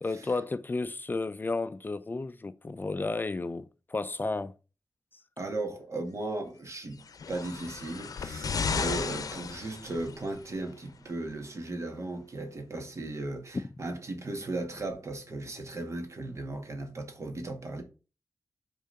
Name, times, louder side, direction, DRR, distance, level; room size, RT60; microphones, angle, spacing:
voice 1, 0.0-4.5 13.5-13.7, left 3 dB, 30° left, 0.4 m, -32 dB
voice 2, 5.4-17.8, right 2 dB, 50° right, 1.9 m, -36 dB
sound 1, 7.0-10.4 11.3-11.4, left 5 dB, 70° left, 0.6 m, -34 dB
6.0 x 3.7 x 5.7 m
wide cardioid pair, 85°, 6 cm